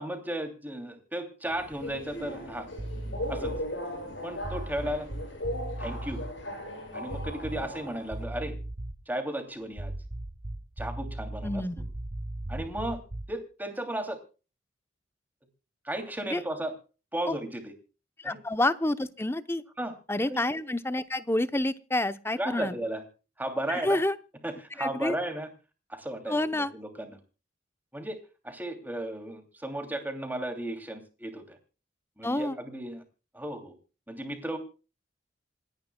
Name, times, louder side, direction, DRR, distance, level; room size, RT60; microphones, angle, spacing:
voice 1, 0.0-2.7 3.3-3.5 4.2-5.1 5.8-6.2 6.9-8.6 9.1-9.9 10.8-11.6 12.5-13.0 13.3-14.2 15.8-16.7 17.1-17.7 18.2-18.4 19.8-19.9 20.3-20.4 22.4-23.0 23.4-24.0 24.4-25.5 25.9-27.2 27.9-28.2 28.4-31.6 32.2-33.0 33.3-33.7 34.1-34.6, right 1 dB, 10° right, 6 dB, 2.8 m, -34 dB
Subway metro underground, 1.4-8.2, left 1 dB, 75° left, 7.1 m, -38 dB
sound 1, 2.8-3.7 4.4-6.3 7.1-7.8 8.1-9.1 9.7-13.4, right 1 dB, 30° right, 0.7 m, -37 dB
voice 2, 11.4-11.7 16.3-16.4 17.3-17.4 18.2-19.6 20.1-22.7 23.7-24.2 24.8-25.1 26.3-26.7 32.2-32.5, left 1 dB, 15° left, 12 dB, 0.7 m, -28 dB
27.5 x 10.5 x 2.3 m, 0.34 s
head